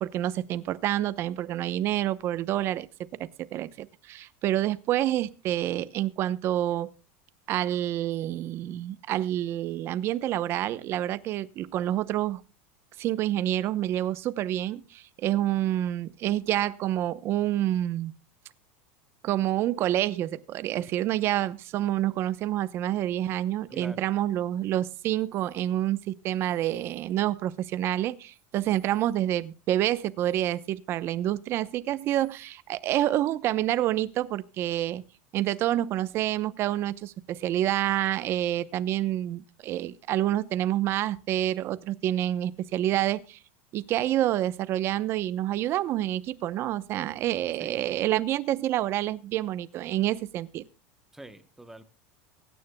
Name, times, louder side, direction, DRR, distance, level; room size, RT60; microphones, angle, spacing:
voice 1, 0.0-2.9 3.4-6.9 7.5-12.4 13.0-18.1 19.2-35.0 35.3-43.4 43.7-50.6, right 13 dB, 40° right, 0.8 m, -28 dB
voice 2, 23.7-24.1 47.6-47.9 51.1-51.8, right 1 dB, 5° right, 1.0 m, -45 dB
23.0 x 9.7 x 2.2 m
supercardioid pair, 145°, 6 cm